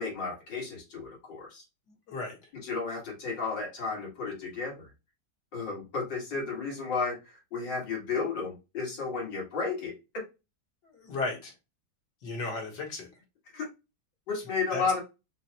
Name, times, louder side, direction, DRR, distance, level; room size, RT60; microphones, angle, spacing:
voice 1, 0.0-1.6 2.5-4.9 5.5-9.9 13.5-13.7 14.3-15.0, left 4 dB, 90° left, -2 dB, 2.6 m, -33 dB
voice 2, 10.9-11.5 12.2-13.1 14.7-15.0, left 3 dB, 70° left, 0 dB, 2.0 m, -34 dB
5.9 x 2.3 x 2.8 m, 0.26 s
omnidirectional pair, 1.9 m